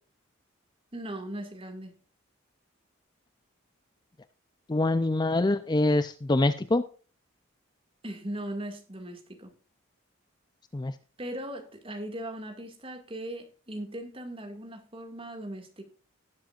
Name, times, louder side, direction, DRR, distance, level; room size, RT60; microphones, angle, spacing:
voice 1, 0.9-2.0 8.0-9.5 11.2-15.8, right 1 dB, 25° right, 2.0 m, -38 dB
voice 2, 4.7-6.8 10.7-10.9, left 2 dB, 20° left, 0.4 m, -25 dB
17.5 x 7.8 x 2.4 m
head